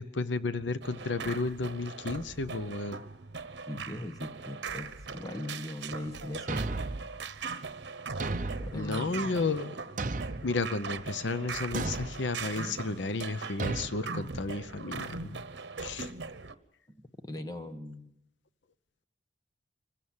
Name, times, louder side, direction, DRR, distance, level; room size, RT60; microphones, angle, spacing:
voice 1, 0.0-3.0 8.7-9.8 10.4-15.4 15.8-16.1, left 3 dB, 85° left, 13 dB, 0.8 m, -33 dB
sound 1, 0.8-16.5, right 4 dB, 75° right, 1.1 m, -40 dB
voice 2, 3.7-6.8 8.6-9.1 17.2-18.1, left 1 dB, 20° left, 8 dB, 1.2 m, -39 dB
Thump thud, 6.5-7.1 8.2-8.8 10.0-10.5 11.7-12.2 13.6-13.9, right 3 dB, 45° right, 0.7 m, -33 dB
25.0 x 16.0 x 7.2 m, 0.81 s
head